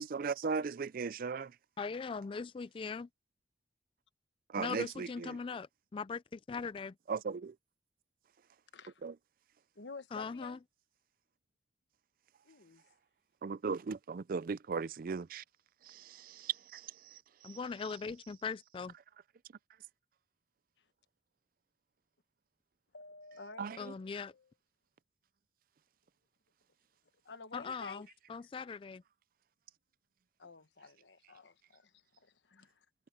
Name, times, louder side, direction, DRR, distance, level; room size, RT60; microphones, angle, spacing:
voice 1, 0.0-1.5 4.5-5.4 7.1-7.5 9.0-9.1 13.4-15.4 15.9-17.6 23.6-23.8, right 5 dB, 50° right, 0.4 m, -37 dB
voice 2, 1.8-3.1 4.6-5.7 5.9-6.9 10.1-10.6 17.4-18.9 23.8-24.3 27.5-29.0, left 5 dB, 30° left, 0.3 m, -40 dB
voice 3, 9.7-10.6 12.4-12.8 22.9-24.5 27.2-28.0 30.4-32.8, left 4 dB, 80° left, 1.1 m, -51 dB
head